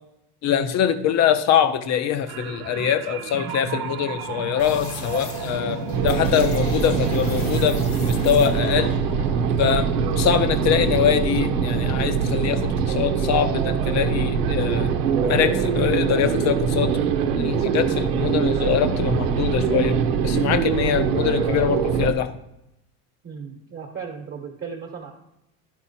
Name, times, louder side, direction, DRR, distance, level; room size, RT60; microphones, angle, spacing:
voice 1, 0.4-8.9 9.6-9.9 10.2-14.9 15.2-17.0 17.4-20.0 20.2-22.3, left 9 dB, 35° left, 10 dB, 0.7 m, -23 dB
sound 1, 2.3-13.0 13.4-13.6, right 7 dB, 65° right, 0.9 m, -35 dB
sound 2, 4.6-10.8, left 3 dB, 85° left, 1.8 m, -37 dB
sound 3, 5.9-22.1, right 6 dB, 90° right, 1.0 m, -23 dB
voice 2, 23.2-25.1, right 6 dB, 30° right, 0 dB, 1.2 m, -36 dB
11.0 x 4.3 x 4.3 m, 0.84 s
supercardioid pair, 125°, 45 cm